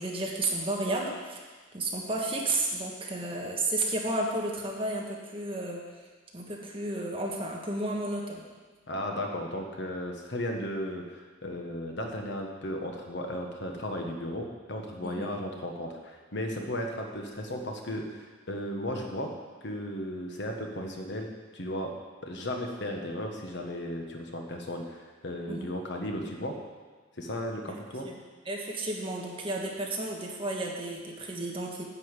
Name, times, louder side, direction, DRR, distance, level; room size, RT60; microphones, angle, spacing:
voice 1, 0.0-1.4 1.7-5.8 6.3-8.4 15.0-15.3 25.5-25.7 28.0-28.1 28.5-31.8, right 2 dB, 25° right, -1 dB, 1.4 m, -32 dB
voice 2, 8.9-19.3 19.6-22.0 22.2-26.6 27.2-28.1, left 1 dB, 60° left, 2 dB, 1.3 m, -35 dB
10.0 x 5.4 x 8.1 m, 1.4 s
head